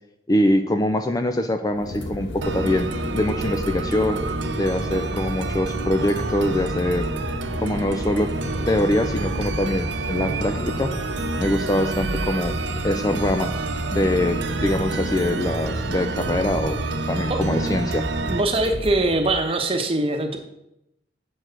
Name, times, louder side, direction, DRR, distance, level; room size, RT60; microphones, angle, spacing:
voice 1, 0.3-2.9 3.1-4.2 4.5-7.1 7.6-8.3 8.7-10.9 11.4-12.6 12.8-13.5 13.9-16.8 17.1-18.1, left 1 dB, 20° left, 8 dB, 0.4 m, -23 dB
sound 1, 1.7-19.3, left 1 dB, 80° left, 1.2 m, -33 dB
sound 2, 2.4-18.4, right 3 dB, 75° right, 0.7 m, -28 dB
sound 3, 8.2-15.8, left 1 dB, 40° left, 0.9 m, -42 dB
voice 2, 18.3-20.4, right 2 dB, 30° right, 4 dB, 1.0 m, -22 dB
7.4 x 4.7 x 6.4 m, 0.84 s
head